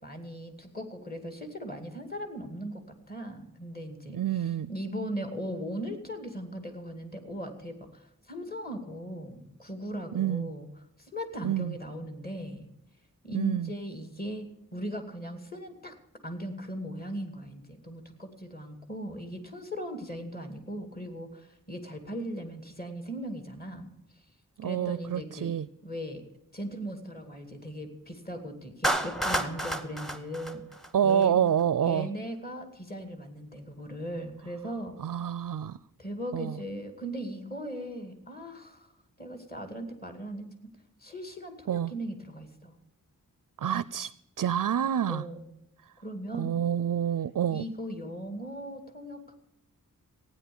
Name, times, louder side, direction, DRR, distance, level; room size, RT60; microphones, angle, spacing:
voice 1, 0.0-10.7 11.0-12.7 13.2-15.9 16.2-24.2 24.6-25.5 25.8-26.2 26.5-30.6 31.0-31.4 31.8-35.0 36.0-38.9 39.2-40.5 41.0-42.7 45.1-45.5 46.0-46.7 47.5-49.3, equal, 25° left, 6 dB, 2.4 m, -38 dB
voice 2, 4.1-4.7 10.1-10.5 11.4-11.7 13.3-13.7 24.6-25.7 30.9-32.1 35.0-35.8 36.3-36.6 41.7-41.9 43.6-44.1 44.4-45.2 46.4-47.6, right 9 dB, 65° right, 18 dB, 0.5 m, -27 dB
Clapping, 28.8-31.2, right 1 dB, ahead, 0.9 m, -30 dB
16.0 x 9.6 x 7.0 m, 0.85 s
wide cardioid pair, 95°, 34 cm